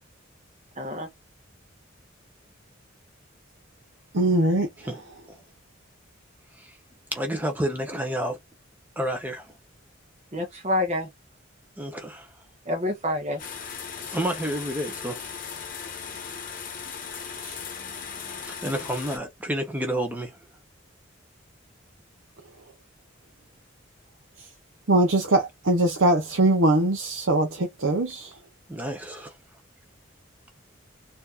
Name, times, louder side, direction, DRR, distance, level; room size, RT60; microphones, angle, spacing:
voice 1, 0.8-1.1 10.3-11.1 12.6-13.4 17.8-17.9, left 1 dB, 35° right, 1.0 m, -28 dB
voice 2, 4.1-4.7 17.4-17.6 24.9-28.3, right 1 dB, 80° right, 0.7 m, -22 dB
voice 3, 7.1-8.4 9.0-9.5 11.8-12.3 14.1-15.2 18.4-20.4 28.7-29.4, right 1 dB, 10° right, 0.9 m, -30 dB
sound 1, 13.4-19.2, left 6 dB, 45° left, 1.0 m, -37 dB
4.2 x 2.8 x 2.5 m
head